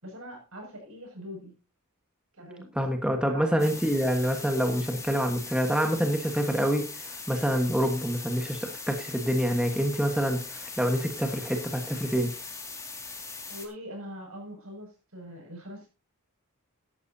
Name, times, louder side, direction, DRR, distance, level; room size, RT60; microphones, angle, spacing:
voice 1, 0.0-1.5 2.3-2.7 3.2-3.7 13.5-15.9, equal, 70° right, 2 dB, 6.4 m, -42 dB
voice 2, 2.7-12.3, equal, 5° right, 4 dB, 1.3 m, -27 dB
sound 1, 3.6-13.7, left 4 dB, 15° left, 2.1 m, -40 dB
14.0 x 11.5 x 2.7 m, 0.30 s
head